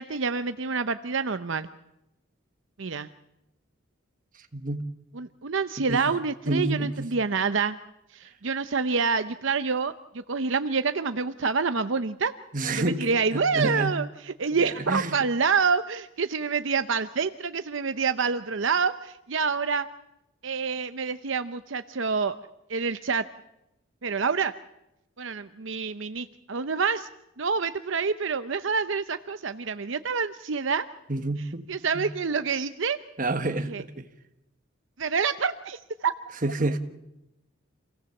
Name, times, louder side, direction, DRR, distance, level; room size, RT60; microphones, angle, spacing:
voice 1, 0.0-1.7 2.8-3.1 5.1-7.8 8.1-12.3 12.7-19.9 20.4-22.4 22.7-23.2 24.0-24.5 25.2-27.1 27.4-30.8 31.4-33.0 33.7-33.8 35.0-36.1, right 5 dB, 70° right, 0.7 m, -27 dB
voice 2, 4.5-4.8 5.8-6.0 6.5-7.1 12.5-13.0 13.3-13.9 14.9-15.1 31.1-31.7 31.9-32.1 33.2-34.1 36.4-36.8, right 2 dB, 40° right, 1.5 m, -28 dB
27.0 x 17.5 x 7.2 m
head